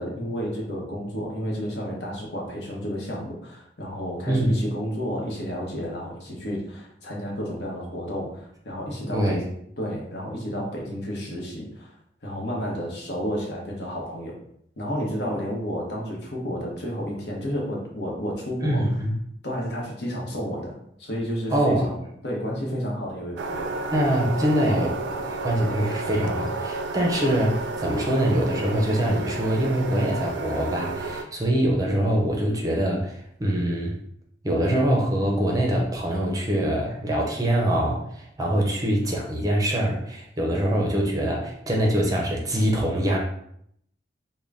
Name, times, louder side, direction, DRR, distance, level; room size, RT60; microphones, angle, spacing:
voice 1, 0.0-9.5 9.8-11.9 12.2-14.4 14.8-19.0 19.4-22.0 22.2-23.7, equal, 65° left, -2 dB, 1.0 m, -31 dB
voice 2, 4.2-4.6 9.1-9.4 18.6-19.1 21.5-21.9 23.9-33.9 34.4-43.2, right 1 dB, 20° right, -1 dB, 0.6 m, -24 dB
sound 1, 23.4-31.2, right 2 dB, 80° right, 0.4 m, -31 dB
3.7 x 2.2 x 3.5 m, 0.71 s
head